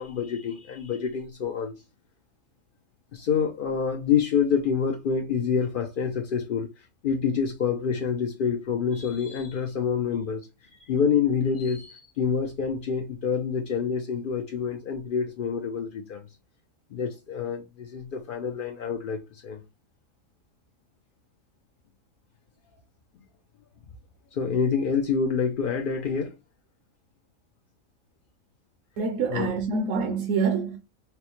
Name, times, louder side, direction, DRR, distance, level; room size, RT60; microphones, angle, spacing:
voice 1, 0.0-1.7 3.1-10.5 10.9-16.3 16.9-19.6 24.3-26.3 29.3-29.5, left 6 dB, 75° left, 0.4 m, -27 dB
voice 2, 29.0-30.8, right 5 dB, 70° right, 0.9 m, -26 dB
4.4 x 2.1 x 2.9 m
omnidirectional pair, 1.4 m